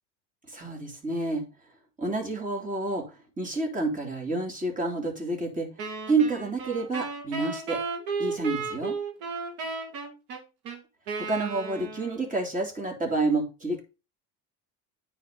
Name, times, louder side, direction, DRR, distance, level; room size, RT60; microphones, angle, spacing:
voice 1, 0.5-1.4 2.0-5.7 6.1-7.8 8.2-9.0 11.2-13.8, right 3 dB, 20° right, 2 dB, 3.7 m, -29 dB
Wind instrument woodwind instrument, 5.8-12.4, right 4 dB, 75° right, 3.4 m, -34 dB
9.5 x 5.0 x 5.4 m, 0.29 s
cardioid pair, 115°, 39 cm